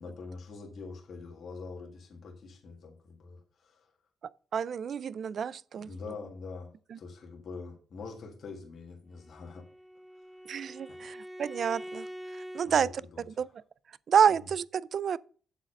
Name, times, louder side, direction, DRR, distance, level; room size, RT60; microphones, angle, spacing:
voice 1, 0.0-3.9 5.8-9.6 10.9-11.0 12.6-13.2 14.3-14.4, left 4 dB, 55° left, 1.7 m, -44 dB
voice 2, 4.5-5.9 6.9-7.0 10.5-12.1 12.3-12.9 13.4-13.6 14.1-15.2, right 7 dB, 60° right, 0.3 m, -28 dB
Bowed string instrument, 9.2-12.7, equal, 5° left, 0.7 m, -44 dB
8.2 x 4.0 x 6.5 m
cardioid pair, 80°, 0 cm